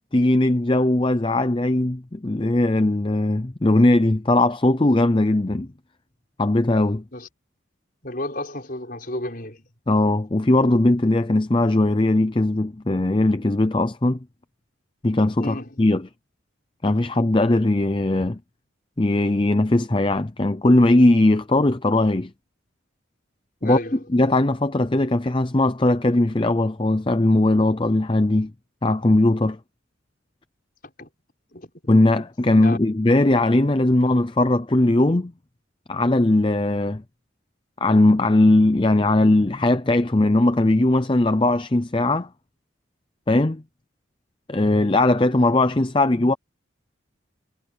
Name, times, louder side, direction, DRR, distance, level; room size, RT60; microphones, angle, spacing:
voice 1, 0.1-5.7 6.4-7.0 9.9-14.2 15.0-16.1 16.8-18.4 19.0-22.3 23.6-23.8 24.1-28.5 28.8-29.6 31.9-35.3 35.9-37.0 37.8-42.3 43.3-43.6 44.5-46.3, left 2 dB, 25° left, 0.6 m, -19 dB
voice 2, 8.0-9.6 15.4-15.7 23.6-24.0 31.0-31.1 31.5-31.7 32.5-32.8, left 1 dB, 45° left, 6.2 m, -32 dB
head